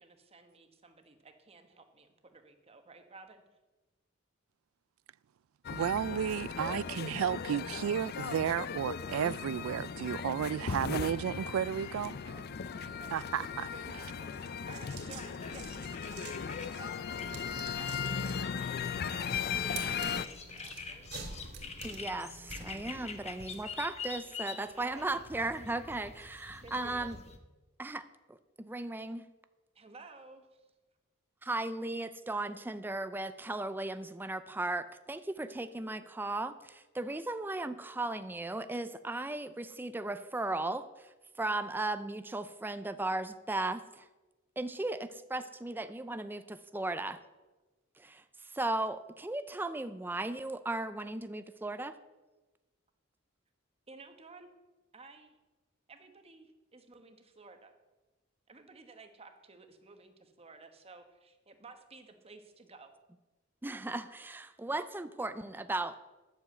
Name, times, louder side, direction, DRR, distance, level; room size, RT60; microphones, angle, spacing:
voice 1, 0.0-3.4 10.3-10.4 10.7-10.8 11.8-18.0 19.1-21.1 23.0-23.3 24.7-25.1 26.6-27.1 29.7-30.7 53.9-54.5 54.9-55.4 55.9-57.7 58.5-62.9, right 3 dB, 30° right, 1.2 m, -54 dB
sound 1, 5.6-20.3, left 6 dB, 50° left, 0.4 m, -37 dB
voice 2, 5.7-12.1 13.1-13.7, right 9 dB, 80° right, 0.3 m, -33 dB
sound 2, 14.3-23.6, right 3 dB, 55° right, 2.4 m, -48 dB
sound 3, 15.1-27.4, left 5 dB, 30° left, 1.1 m, -47 dB
voice 3, 21.8-27.2 27.8-29.3 31.4-44.1 44.6-47.2 48.0-52.0 63.6-65.9, right 2 dB, 10° right, 0.4 m, -36 dB
11.0 x 7.1 x 7.9 m
head